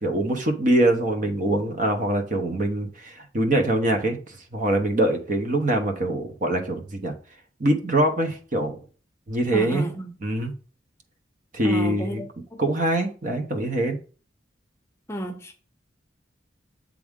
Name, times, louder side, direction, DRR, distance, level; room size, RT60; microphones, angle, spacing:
voice 1, 0.0-7.1 7.6-8.8 9.3-9.9 10.2-10.5 11.5-12.2 12.6-14.0, right 1 dB, 45° right, 0.9 m, -24 dB
voice 2, 9.5-10.1 11.6-12.2 12.5-12.6 15.1-15.6, right 1 dB, 15° left, 0.7 m, -32 dB
7.6 x 3.6 x 3.6 m
head